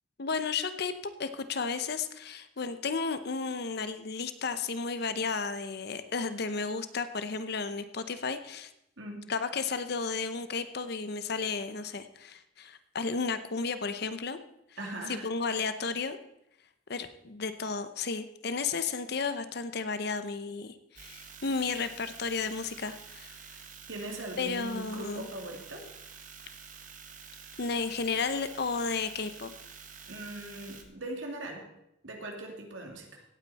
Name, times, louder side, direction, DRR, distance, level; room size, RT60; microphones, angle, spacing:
voice 1, 0.2-8.7 9.3-14.4 15.1-16.2 16.9-23.4 24.4-25.3 27.6-29.5, left 4 dB, 55° left, 11 dB, 0.8 m, -33 dB
voice 2, 14.8-15.3 23.9-25.8 30.1-31.7 32.0-33.2, right 1 dB, 80° right, 2 dB, 2.5 m, -40 dB
sound 1, 21.0-30.8, right 6 dB, 45° right, 1.3 m, -49 dB
17.0 x 9.0 x 4.2 m, 0.82 s
head